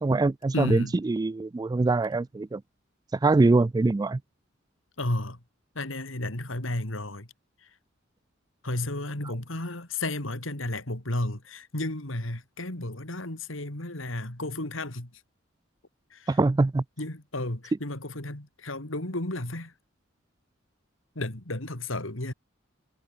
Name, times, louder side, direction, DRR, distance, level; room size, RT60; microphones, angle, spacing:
voice 1, 0.0-2.6 3.2-4.2 16.3-16.8, right 3 dB, 20° right, 0.3 m, -23 dB
voice 2, 0.5-1.0 5.0-5.4 5.8-7.3 8.6-15.1 16.1-16.4 17.0-19.7 21.2-22.3, left 1 dB, 75° left, 3.5 m, -32 dB
head